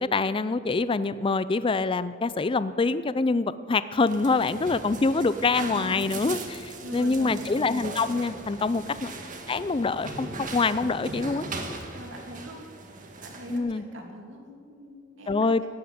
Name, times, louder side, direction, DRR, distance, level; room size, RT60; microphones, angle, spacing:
voice 1, 0.0-9.1 9.5-11.4 13.5-13.8 15.3-15.7, left 3 dB, 25° left, 15 dB, 0.4 m, -25 dB
sound 1, 4.0-13.6, right 3 dB, 40° right, 1.8 m, -39 dB
sound 2, 4.6-10.8, equal, 50° left, 1.9 m, -49 dB
voice 2, 5.3-6.1 6.8-7.7 8.8-9.1 11.9-12.7 12.9-15.7, right 1 dB, 75° right, 1 dB, 2.8 m, -43 dB
17.5 x 10.5 x 7.9 m, 2.1 s
head